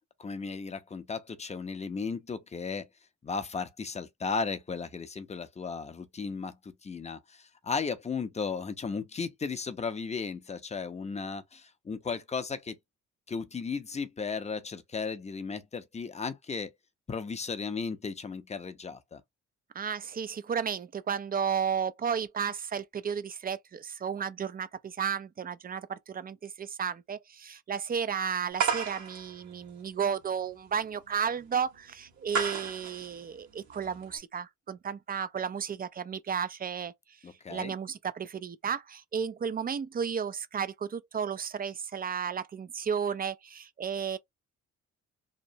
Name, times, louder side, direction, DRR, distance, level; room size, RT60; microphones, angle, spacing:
voice 1, 0.2-2.9 3.2-12.8 13.3-16.7 17.1-19.2 37.2-37.7, left 5 dB, 20° left, 0.6 m, -35 dB
voice 2, 19.7-36.9 37.5-44.2, right 7 dB, 30° right, 0.4 m, -33 dB
sound 1, 28.6-34.2, right 6 dB, 65° right, 1.5 m, -35 dB
2.9 x 2.1 x 2.7 m
cardioid pair, 90°, 30 cm